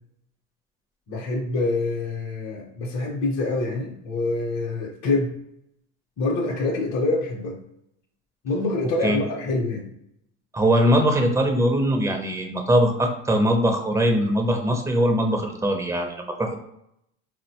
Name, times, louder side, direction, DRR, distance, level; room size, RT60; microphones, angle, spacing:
voice 1, 1.1-5.4 6.2-7.6 8.4-9.9, left 2 dB, 50° left, -1 dB, 0.7 m, -26 dB
voice 2, 10.5-16.5, equal, 10° right, 3 dB, 0.5 m, -21 dB
3.9 x 2.1 x 2.8 m, 0.78 s
supercardioid pair, 110°, 37 cm